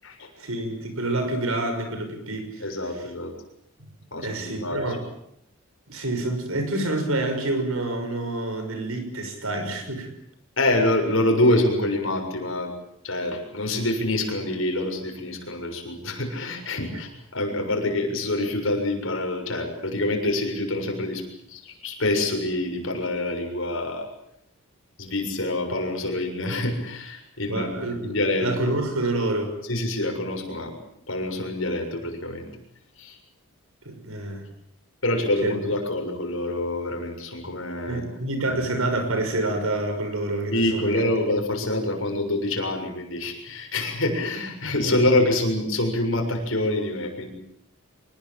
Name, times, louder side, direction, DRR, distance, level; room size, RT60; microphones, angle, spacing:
voice 1, 0.4-2.6 2.9-3.1 4.2-5.1 5.9-10.1 16.9-17.0 27.5-29.6 33.8-34.5 35.4-35.6 37.9-41.1 44.8-45.1, right 2 dB, 70° right, 7 dB, 6.2 m, -28 dB
voice 2, 2.6-3.3 4.1-5.0 10.6-12.7 13.0-24.1 25.0-28.7 29.7-30.8 31.1-32.5 33.0-33.2 35.0-38.0 38.5-38.6 40.5-47.3, left 1 dB, 65° left, 3 dB, 7.0 m, -26 dB
25.5 x 20.5 x 8.9 m, 0.75 s
head